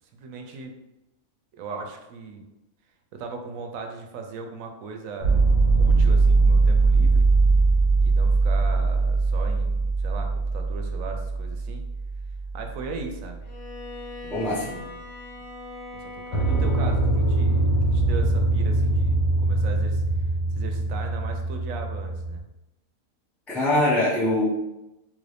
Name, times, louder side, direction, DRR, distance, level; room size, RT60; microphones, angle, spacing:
voice 1, 0.1-0.7 1.5-2.4 3.2-7.3 8.0-11.8 12.5-13.4 14.2-15.1 15.9-20.0 20.6-22.4, right 4 dB, 75° right, 4 dB, 1.0 m, -38 dB
sound 1, 5.2-13.0 16.3-22.4, right 3 dB, 75° left, 1.4 m, -21 dB
Bowed string instrument, 13.4-17.1, left 3 dB, 20° left, 0.7 m, -41 dB
voice 2, 14.3-14.7 23.5-24.5, left 1 dB, ahead, -8 dB, 0.4 m, -22 dB
3.3 x 2.6 x 3.3 m, 0.95 s
omnidirectional pair, 1.5 m